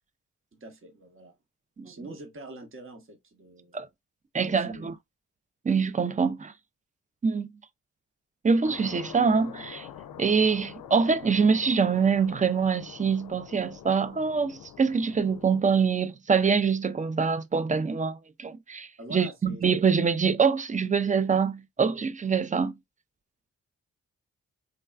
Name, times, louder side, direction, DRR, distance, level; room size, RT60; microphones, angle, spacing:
voice 1, 0.5-1.3 1.9-3.8 4.4-4.8 19.0-19.6, right 2 dB, 40° right, 0.9 m, -44 dB
voice 2, 4.3-4.9 5.6-6.5 7.2-7.5 8.4-9.9 10.2-22.8, right 5 dB, 25° right, 0.4 m, -25 dB
sound 1, 8.6-15.6, left 9 dB, 80° left, 0.5 m, -45 dB
3.3 x 2.3 x 2.3 m
supercardioid pair, 45°, 33 cm